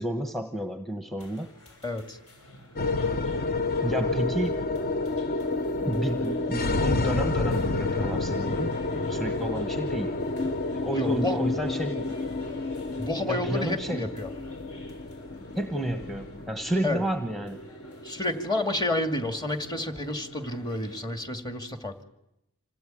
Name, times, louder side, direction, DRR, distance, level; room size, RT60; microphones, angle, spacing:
voice 1, 0.0-1.5 3.8-4.5 5.8-10.2 10.4-12.2 13.3-14.1 15.5-17.6, right 1 dB, ahead, 6 dB, 1.1 m, -31 dB
sound 1, 1.2-21.0, equal, 70° left, 6.5 m, -50 dB
voice 2, 1.8-2.2 10.9-11.4 12.9-14.3 16.8-17.0 18.0-21.9, left 1 dB, 20° left, 6 dB, 2.4 m, -30 dB
sound 2, 2.8-21.1, left 3 dB, 45° left, 0.9 m, -30 dB
27.0 x 18.0 x 9.2 m, 0.87 s
head